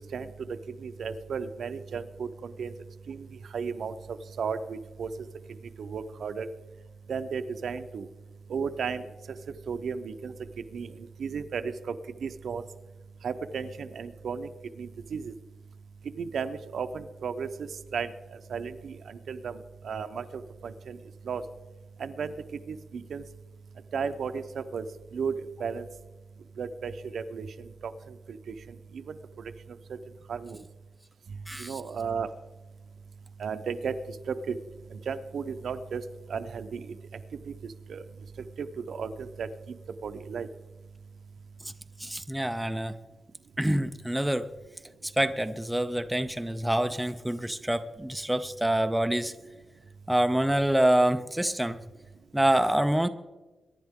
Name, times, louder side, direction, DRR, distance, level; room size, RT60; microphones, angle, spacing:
voice 1, 0.8-2.7 3.1-3.3 3.5-5.1 5.8-6.5 7.1-8.1 8.5-9.0 9.7-10.3 10.7-11.9 12.2-12.6 13.2-14.5 14.8-15.3 16.2-18.1 18.5-19.6 19.8-21.0 21.2-21.4 22.0-22.3 22.7-23.2 23.9-24.8 25.1-25.3 25.6-25.9 26.6-27.5 27.8-27.9 28.3-29.2 30.3-30.6 31.6-32.3 33.4-33.9 34.3-34.6 34.9-36.0 36.3-37.0 37.9-38.0 38.6-39.5 40.0-40.5, right 6 dB, 65° right, 10 dB, 0.7 m, -34 dB
voice 2, 42.0-42.9 43.6-44.5 45.2-49.3 50.1-51.8 52.3-53.1, right 1 dB, 5° right, 9 dB, 0.4 m, -26 dB
23.5 x 10.5 x 3.6 m, 1.2 s
wide cardioid pair, 175°, 0 cm